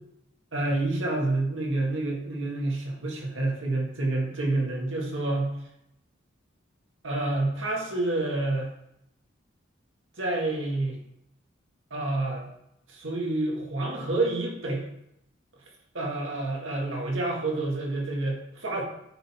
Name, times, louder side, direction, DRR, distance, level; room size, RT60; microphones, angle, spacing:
voice 1, 0.5-5.5 7.0-8.7 10.2-11.0 11.9-12.4 12.9-14.9 15.9-18.8, right 2 dB, 80° right, -1 dB, 1.8 m, -28 dB
8.9 x 3.9 x 4.3 m, 0.82 s
head